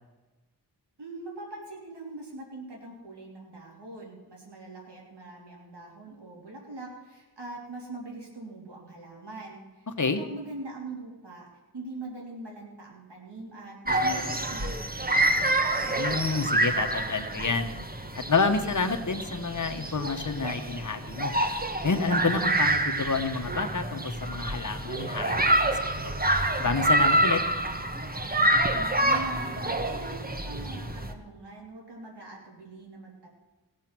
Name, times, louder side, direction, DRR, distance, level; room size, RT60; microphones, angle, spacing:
voice 1, 1.0-9.9 10.1-15.5 28.7-33.3, right 2 dB, 85° right, -1 dB, 3.2 m, -42 dB
sound 1, 13.9-31.1, right 1 dB, 20° right, 1.3 m, -27 dB
voice 2, 15.9-17.7 18.1-21.3 21.8-25.7 26.0-26.1 26.6-27.4, left 4 dB, 45° left, 6 dB, 1.2 m, -29 dB
18.0 x 7.5 x 6.0 m, 1.2 s
wide cardioid pair, 55°, 40 cm